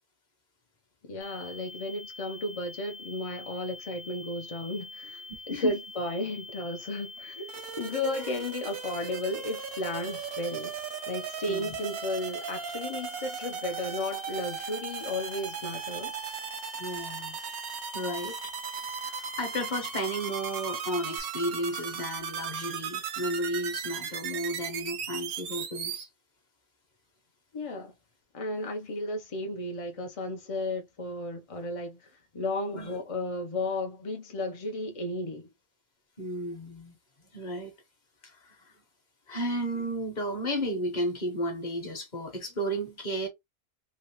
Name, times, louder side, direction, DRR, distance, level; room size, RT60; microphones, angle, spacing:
voice 1, 1.0-10.7 11.1-16.2 27.5-27.9 28.3-35.5, left 1 dB, 60° left, 0.3 m, -34 dB
sound 1, 1.2-21.2, left 3 dB, 85° left, 1.2 m, -45 dB
sound 2, 7.5-26.0, right 8 dB, 85° right, 1.1 m, -37 dB
voice 2, 11.5-11.8 16.8-17.4 17.9-18.4 19.0-26.1 32.7-33.0 36.2-36.9 37.3-37.7 38.2-38.7 39.3-43.3, equal, 35° left, 1.0 m, -33 dB
2.9 x 2.7 x 2.9 m
omnidirectional pair, 1.5 m